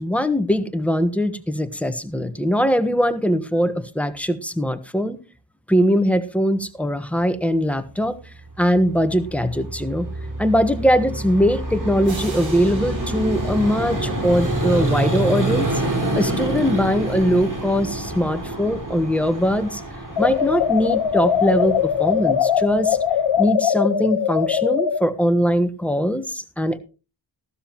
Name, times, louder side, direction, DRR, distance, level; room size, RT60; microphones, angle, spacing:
voice 1, 0.0-5.2 5.7-8.2 8.6-10.1 10.4-15.7 16.1-19.8 20.2-23.0 23.4-26.8, equal, 5° left, 9 dB, 1.3 m, -21 dB
Vehicle, 8.7-23.4, right 1 dB, 45° right, 4.8 m, -27 dB
sound 1, 12.0-14.7, right 3 dB, 80° right, 7.2 m, -41 dB
sound 2, 20.2-25.0, left 8 dB, 70° left, 0.8 m, -21 dB
15.5 x 12.5 x 3.0 m, 0.32 s
wide cardioid pair, 70°, 45 cm